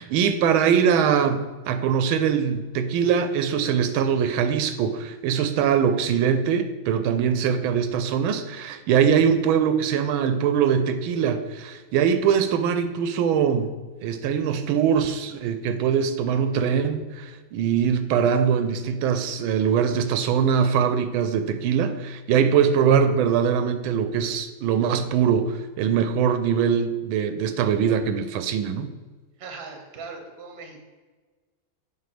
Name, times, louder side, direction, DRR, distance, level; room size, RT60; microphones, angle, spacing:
voice 1, 0.0-13.7 14.0-28.9, right 7 dB, 85° right, 9 dB, 1.4 m, -22 dB
voice 2, 29.4-30.8, right 4 dB, 40° right, 3 dB, 1.0 m, -39 dB
7.6 x 3.1 x 5.9 m, 1.3 s
omnidirectional pair, 2.2 m